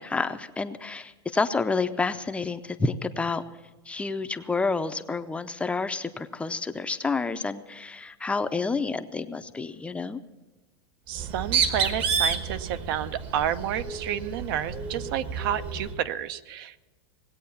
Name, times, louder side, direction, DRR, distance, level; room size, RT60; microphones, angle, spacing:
voice 1, 0.0-3.4 3.9-10.2, left 4 dB, 10° left, 9 dB, 0.6 m, -29 dB
Bird, 11.1-16.0, right 6 dB, 40° right, 1.3 m, -30 dB
voice 2, 11.1-16.8, right 10 dB, 55° right, 13 dB, 0.8 m, -30 dB
19.0 x 8.5 x 7.1 m, 1.2 s
supercardioid pair, 145°, 13 cm